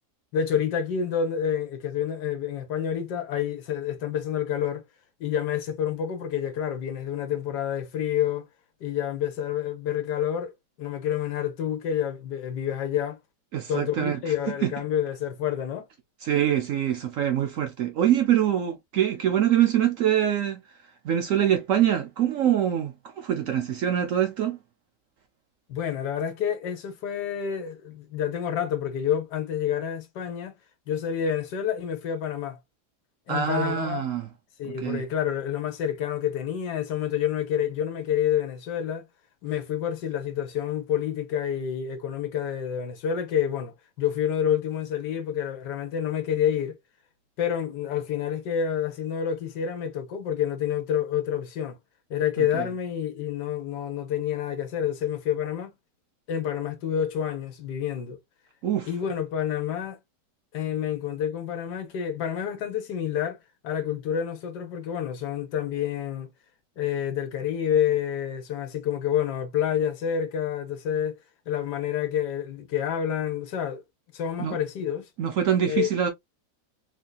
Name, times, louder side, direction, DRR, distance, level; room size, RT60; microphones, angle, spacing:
voice 1, 0.3-4.8 5.2-8.5 8.8-13.2 13.7-15.9 25.7-30.6 30.9-32.6 33.3-34.0 34.6-39.1 39.4-46.8 47.4-51.8 52.1-55.7 56.3-58.2 58.9-60.0 60.5-63.4 63.6-66.3 66.8-71.2 71.5-73.8 74.1-75.1 75.7-75.9, left 9 dB, 75° left, 1.4 m, -28 dB
voice 2, 13.5-14.7 16.2-20.6 21.0-24.6 33.3-34.3 34.7-35.0 52.4-52.7 58.6-58.9 74.4-74.6 75.2-76.1, right 10 dB, 65° right, 0.8 m, -24 dB
3.9 x 2.7 x 2.2 m
omnidirectional pair, 1.8 m